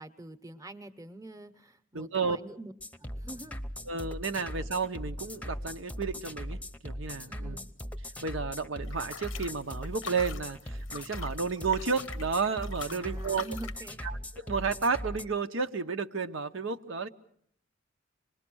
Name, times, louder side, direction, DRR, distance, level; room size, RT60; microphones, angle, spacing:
voice 1, 0.0-2.7 3.0-3.6 7.3-7.7 12.9-14.1, right 2 dB, 15° right, 9 dB, 0.9 m, -45 dB
voice 2, 1.9-2.4 3.9-7.6 8.2-13.4 14.0-17.1, right 5 dB, 75° right, 7 dB, 0.8 m, -32 dB
sound 1, 2.8-15.2, equal, 10° left, 0.8 m, -39 dB
sound 2, 8.8-13.9, left 7 dB, 90° left, 0.8 m, -44 dB
25.5 x 21.0 x 6.2 m, 0.66 s
head